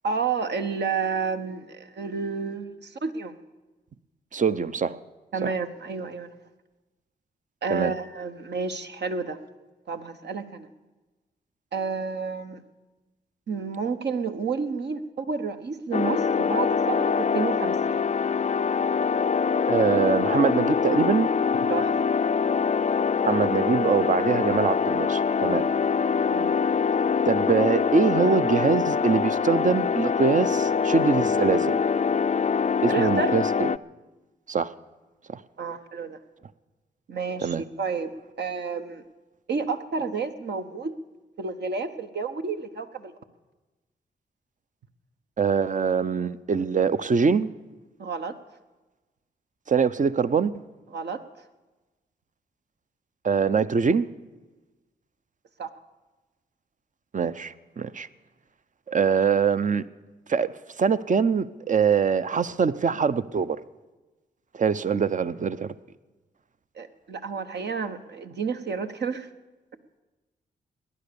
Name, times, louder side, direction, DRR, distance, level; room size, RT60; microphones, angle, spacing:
voice 1, 0.0-3.4 5.3-6.3 7.6-9.4 9.9-10.7 11.7-12.6 13.5-18.1 21.7-21.9 26.3-26.5 32.9-33.3 35.6-36.2 37.1-39.0 39.5-41.0 41.4-43.1 48.0-48.3 50.9-51.2 55.6-55.7 66.8-69.3, right 5 dB, 60° right, 7 dB, 1.2 m, -30 dB
voice 2, 4.3-5.0 5.4-5.5 7.7-7.9 19.7-21.3 23.2-25.6 27.3-31.8 32.8-33.7 34.5-34.7 35.3-35.4 37.4-37.6 45.4-47.5 49.7-50.5 53.2-54.1 57.1-58.1 58.9-59.8 60.3-60.5 60.8-63.6 64.5-65.7, right 5 dB, 40° right, 14 dB, 0.7 m, -23 dB
sound 1, 15.9-33.8, left 6 dB, 35° left, 0.4 m, -24 dB
18.0 x 11.0 x 7.0 m, 1.2 s
supercardioid pair, 45°, 20 cm